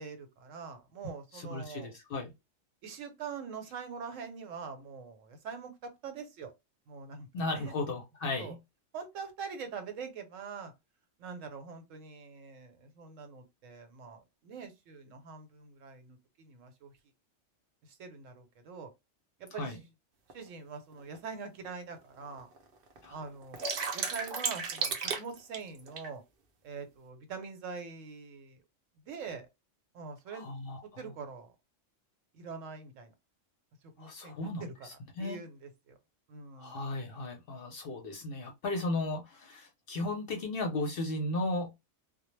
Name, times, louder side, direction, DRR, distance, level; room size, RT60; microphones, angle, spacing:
voice 1, 0.0-1.9 2.8-6.5 6.9-7.7 8.4-8.5 8.9-10.7 11.2-16.9 17.8-18.9 19.4-19.7 20.3-22.5 23.1-23.6 23.9-26.2 26.6-28.6 29.1-29.5 29.9-30.5 30.8-31.5 32.3-33.1 33.8-35.9 36.3-36.8, right 5 dB, 80° right, 1.0 m, -44 dB
voice 2, 1.3-2.3 7.3-8.6 19.5-19.8 23.0-23.2 30.3-31.1 34.0-35.4 36.6-41.7, left 2 dB, 55° left, 0.7 m, -35 dB
sound 1, 20.3-20.4 21.1-21.2 21.6-21.7 22.0-22.6 23.0-26.1, right 5 dB, 60° right, 0.6 m, -34 dB
2.2 x 2.0 x 3.0 m
omnidirectional pair, 1.3 m